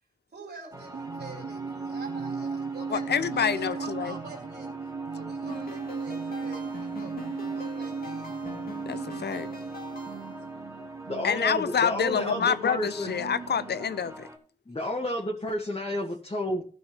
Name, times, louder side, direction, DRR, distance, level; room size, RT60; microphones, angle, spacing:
voice 1, 0.3-7.2 7.5-8.4 10.0-10.2 10.5-10.7 14.7-15.0 16.5-16.6, right 3 dB, 85° right, 3.6 m, -46 dB
sound 1, 0.7-14.4, equal, 15° right, 2.2 m, -45 dB
sound 2, 0.7-14.1, right 5 dB, 65° right, 0.7 m, -37 dB
voice 2, 2.9-4.1 8.9-9.5 11.2-14.3, left 7 dB, 85° left, 0.6 m, -27 dB
sound 3, 5.5-10.5, left 3 dB, 60° left, 2.7 m, -43 dB
voice 3, 11.0-13.1 14.7-16.6, left 1 dB, 35° left, 2.3 m, -31 dB
15.0 x 6.0 x 4.1 m
cardioid pair, 55°, 17 cm